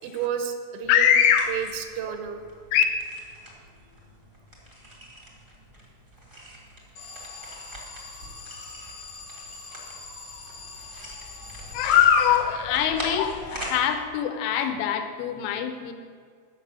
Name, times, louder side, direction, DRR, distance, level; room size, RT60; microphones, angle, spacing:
voice 1, 0.0-1.1 1.5-2.4 7.0-7.1, right 8 dB, 85° right, 7 dB, 3.6 m, -31 dB
voice 2, 0.9-1.6 2.7-2.8 11.7-15.9, left 9 dB, 80° left, 7 dB, 3.0 m, -22 dB
sound 1, 1.0-13.8, equal, 45° right, 0.6 m, -43 dB
Alarm, 7.0-12.5, left 3 dB, 50° left, 3.2 m, -43 dB
11.0 x 6.4 x 8.7 m, 2.1 s
omnidirectional pair, 5.7 m